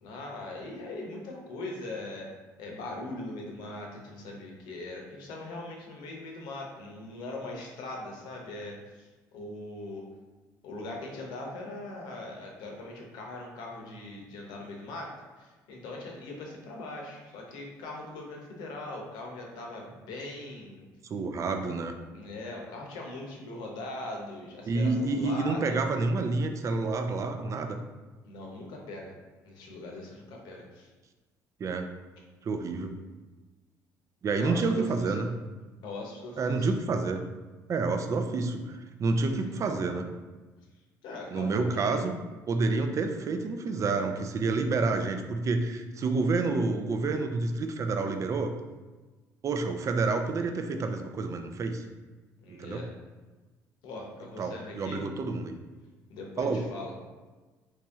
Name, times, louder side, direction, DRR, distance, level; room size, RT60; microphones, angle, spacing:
voice 1, 0.0-2.3 2.6-10.0 10.6-15.1 15.4-20.9 22.1-25.8 28.3-29.1 29.4-30.9 34.4-35.3 35.8-36.7 41.0-42.0 52.4-52.9 53.8-55.2 56.1-56.9, left 2 dB, 80° left, 0 dB, 0.8 m, -40 dB
voice 2, 21.1-21.9 24.7-27.8 31.6-31.9 32.4-33.0 34.2-35.3 36.4-37.2 37.7-40.1 41.3-42.1 42.5-48.5 49.4-51.8 52.6-52.8 54.4-55.6 56.4-56.6, right 3 dB, 45° right, 6 dB, 0.4 m, -29 dB
3.1 x 2.8 x 3.5 m, 1.3 s
cardioid pair, 85°, 7 cm